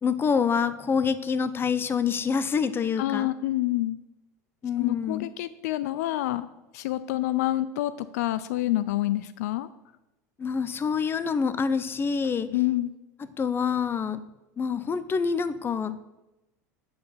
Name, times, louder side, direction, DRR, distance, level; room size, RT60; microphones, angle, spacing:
voice 1, 0.0-3.3 4.6-5.3 10.4-12.5 13.4-14.2 14.6-16.1, left 6 dB, 25° left, 14 dB, 0.6 m, -26 dB
voice 2, 3.0-4.0 4.8-6.5 6.7-9.7 12.5-12.9, left 15 dB, 70° left, 15 dB, 0.4 m, -27 dB
8.5 x 4.7 x 7.0 m, 0.97 s
hypercardioid pair, 85°, 9 cm